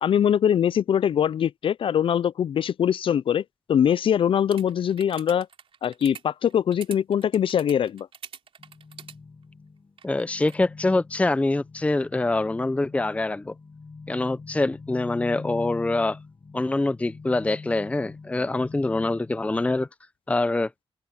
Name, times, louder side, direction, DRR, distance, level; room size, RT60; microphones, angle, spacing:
voice 1, 0.0-3.4 3.7-5.5 5.8-8.1, left 9 dB, 60° left, 0.4 m, -22 dB
sound 1, 4.5-9.1 10.0-10.6, right 7 dB, 70° right, 3.6 m, -44 dB
sound 2, 8.6-19.9, left 4 dB, 40° left, 4.1 m, -43 dB
voice 2, 10.0-13.5 14.1-16.2 16.5-19.9 20.3-20.7, left 2 dB, 15° left, 0.6 m, -25 dB
open air
cardioid pair, 105°, 10 cm